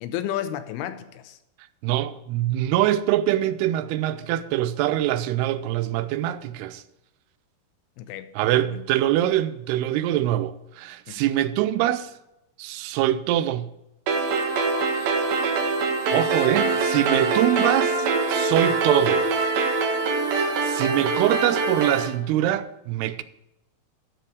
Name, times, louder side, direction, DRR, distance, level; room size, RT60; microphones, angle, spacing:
voice 1, 0.0-1.4 8.0-8.8 11.1-11.2, left 11 dB, 85° left, 2.6 m, -32 dB
voice 2, 1.8-6.8 8.4-12.1 12.6-13.7 14.9-15.1 16.1-19.2 20.3-23.2, right 13 dB, 85° right, 2.6 m, -24 dB
sound 1, 14.1-22.1, right 4 dB, 70° right, 3.0 m, -23 dB
13.0 x 4.5 x 7.9 m
omnidirectional pair, 4.6 m